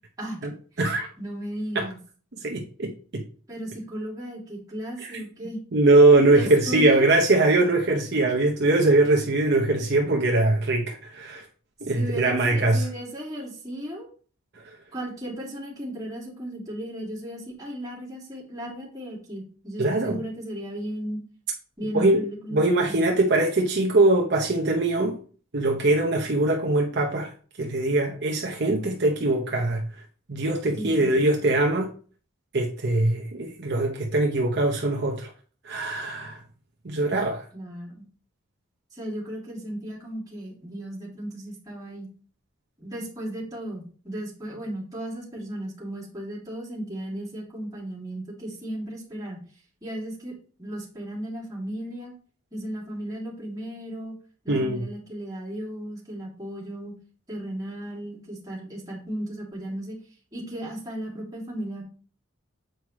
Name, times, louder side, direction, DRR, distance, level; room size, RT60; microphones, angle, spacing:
voice 1, 1.2-2.0 3.5-5.6 6.3-7.1 11.9-14.1 14.9-21.2 21.8-23.0 30.7-31.2 37.1-37.2 37.5-38.0 38.9-42.1 42.8-49.4 49.8-50.3 50.6-52.1 52.5-54.1 54.4-56.9 57.3-60.0 60.3-61.8, right 1 dB, 15° right, 2.2 m, -35 dB
voice 2, 2.4-3.2 5.0-5.2 5.7-11.5 11.8-12.9 19.8-20.2 21.9-22.2 22.5-25.2 25.5-27.3 27.6-29.8 30.3-31.9 32.5-35.3 35.6-36.4 36.8-37.4 54.5-54.8, right 2 dB, 55° right, 0.8 m, -22 dB
7.8 x 4.7 x 3.1 m
head